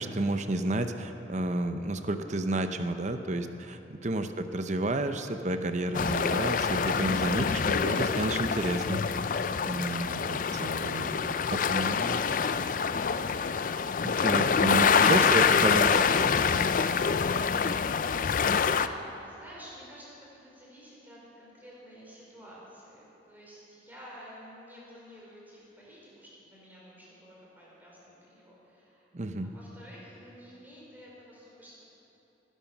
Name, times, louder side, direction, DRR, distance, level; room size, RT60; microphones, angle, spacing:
voice 1, 0.0-9.0 9.6-12.2 14.0-16.3 29.1-29.5, right 2 dB, 40° right, 8 dB, 0.8 m, -31 dB
sound 1, 5.9-18.9, left 6 dB, 50° left, 0.4 m, -26 dB
voice 2, 18.3-29.1 29.4-31.8, equal, 10° right, -6 dB, 4.6 m, -51 dB
19.0 x 11.0 x 6.1 m, 3.0 s
head